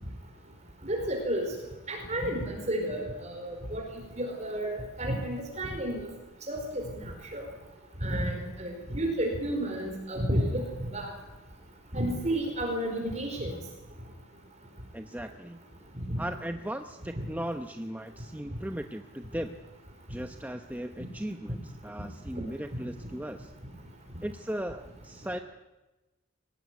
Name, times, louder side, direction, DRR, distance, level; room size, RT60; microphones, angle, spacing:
voice 1, 0.8-1.5 1.9-3.8 4.2-6.1 6.5-7.4 8.0-11.1 11.9-13.5 15.9-16.2 17.1-17.2 22.3-22.4 22.7-22.8, right 1 dB, 35° right, 1 dB, 4.7 m, -31 dB
voice 2, 14.9-15.6 16.2-19.6 20.1-23.5 24.2-25.4, equal, 10° right, 6 dB, 0.8 m, -37 dB
23.0 x 19.0 x 9.5 m, 1.1 s
head